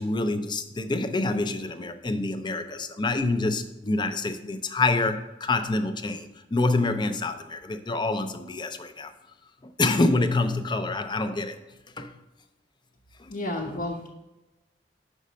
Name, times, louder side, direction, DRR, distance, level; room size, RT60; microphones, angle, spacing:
voice 1, 0.0-9.1 9.6-11.6 12.0-12.1 13.2-13.3 13.7-13.8, left 2 dB, 25° left, 8 dB, 0.5 m, -27 dB
voice 2, 13.3-14.1, left 1 dB, 55° left, -2 dB, 0.9 m, -31 dB
6.5 x 5.4 x 5.0 m, 1.0 s
head